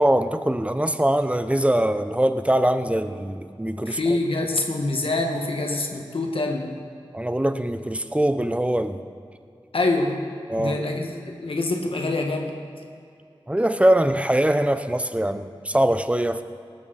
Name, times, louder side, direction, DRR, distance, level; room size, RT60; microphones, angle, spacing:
voice 1, 0.0-4.0 7.1-9.0 10.5-10.8 13.5-16.4, right 1 dB, 15° right, 10 dB, 0.9 m, -22 dB
voice 2, 3.8-6.8 9.7-10.2 10.6-12.6, left 2 dB, 75° left, 2 dB, 1.7 m, -25 dB
18.5 x 13.5 x 4.3 m, 2.4 s
cardioid pair, 40°, 9 cm